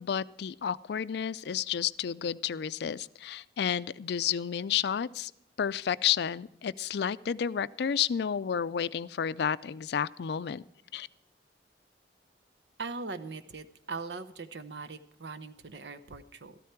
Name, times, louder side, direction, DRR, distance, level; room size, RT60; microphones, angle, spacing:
voice 1, 0.0-5.3 5.6-10.6 10.9-11.1, left 8 dB, 65° left, 17 dB, 0.4 m, -31 dB
voice 2, 12.8-16.6, right 4 dB, 75° right, 11 dB, 0.8 m, -40 dB
13.5 x 13.0 x 4.5 m, 0.77 s
head